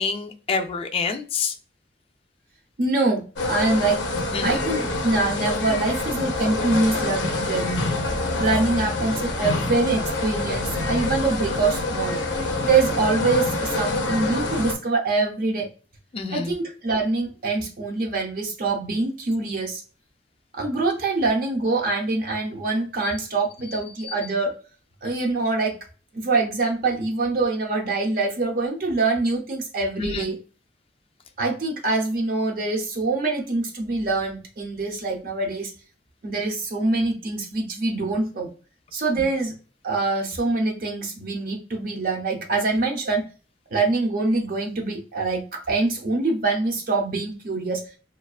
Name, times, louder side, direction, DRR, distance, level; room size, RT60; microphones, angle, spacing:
voice 1, 0.0-1.5 4.3-4.7 16.1-16.5 24.1-24.2 30.0-30.3 39.2-39.3, left 5 dB, 30° left, 6 dB, 0.3 m, -27 dB
voice 2, 2.8-4.0 4.4-7.9 8.4-12.2 12.6-15.7 16.3-19.8 20.5-24.5 25.0-25.7 26.1-30.4 31.4-35.7 36.2-38.5 38.9-39.5 39.8-43.2 43.7-47.8, right 3 dB, 50° right, 1 dB, 0.5 m, -24 dB
sound 1, 3.4-14.7, left 2 dB, 85° left, 0.5 m, -26 dB
2.4 x 2.2 x 2.3 m, 0.36 s
head